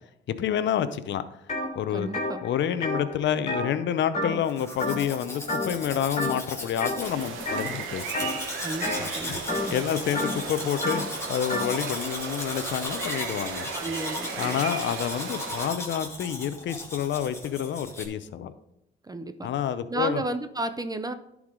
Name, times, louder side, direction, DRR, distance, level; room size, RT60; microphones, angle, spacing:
voice 1, 0.3-1.2 1.8-2.1 2.4-8.3 9.0-9.4 9.7-13.7 14.4-18.5 19.4-20.2, left 9 dB, 65° left, 12 dB, 0.7 m, -28 dB
sound 1, 1.5-1.7 2.0-4.5 4.8-5.2 5.5-5.8 6.2-7.0 7.5-7.8 8.1-11.7, left 1 dB, 35° left, 3.0 m, -31 dB
voice 2, 1.9-2.4 8.6-9.8 13.7-14.7 19.1-19.5 19.9-21.1, right 2 dB, 20° right, 10 dB, 0.6 m, -33 dB
Domestic sounds home sounds, 4.4-18.1, left 2 dB, 15° left, 2.2 m, -37 dB
sound 2, 7.0-15.7, right 5 dB, 90° right, 1.1 m, -36 dB
11.0 x 4.8 x 3.8 m, 0.85 s
cardioid pair, 90°, 20 cm